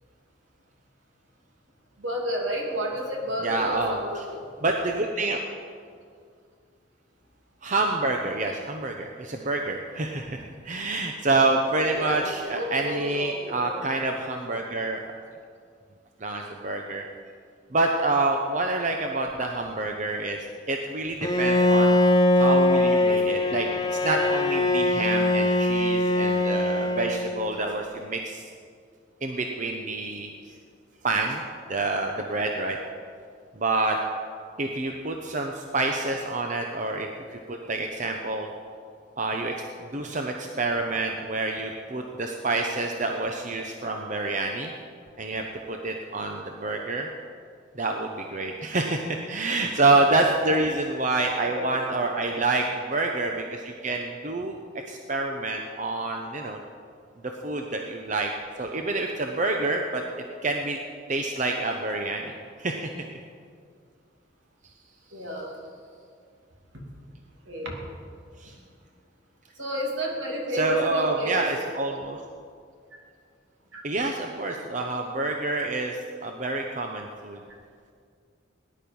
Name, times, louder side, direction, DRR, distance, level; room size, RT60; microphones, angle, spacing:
voice 1, 2.0-4.4 11.9-13.7 49.8-50.0 51.3-51.7 65.1-65.5 67.5-67.7 69.6-71.4 73.7-73.8, right 1 dB, 75° right, -1 dB, 2.9 m, -31 dB
voice 2, 3.4-4.0 4.6-5.4 7.6-15.1 16.2-17.0 17.7-22.0 22.3-28.4 29.2-30.3 31.0-31.4 31.7-32.8 33.6-34.0 34.6-38.5 39.2-39.5 39.9-44.7 45.2-47.1 47.7-54.6 54.9-56.6 57.4-58.3 58.6-60.0 60.4-60.8 61.1-62.3 62.6-62.8 68.4-68.5 70.5-72.2 73.8-77.4, right 2 dB, 40° right, 3 dB, 0.8 m, -27 dB
Bowed string instrument, 21.2-27.5, left 1 dB, 20° left, 0.8 m, -22 dB
18.5 x 10.5 x 5.4 m, 2.2 s
head